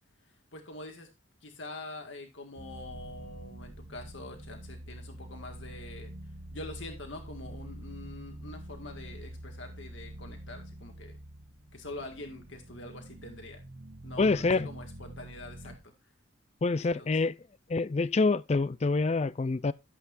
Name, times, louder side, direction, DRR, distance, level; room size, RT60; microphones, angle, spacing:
voice 1, 0.5-1.1 1.4-6.1 6.5-11.2 11.7-13.6 14.0-15.7 16.8-17.1, left 2 dB, 70° left, 2.0 m, -45 dB
sound 1, 2.6-15.8, right 1 dB, 60° right, 1.3 m, -46 dB
voice 2, 14.2-14.7 16.6-17.4 17.7-19.7, left 3 dB, 35° left, 0.4 m, -26 dB
12.5 x 8.2 x 2.5 m
head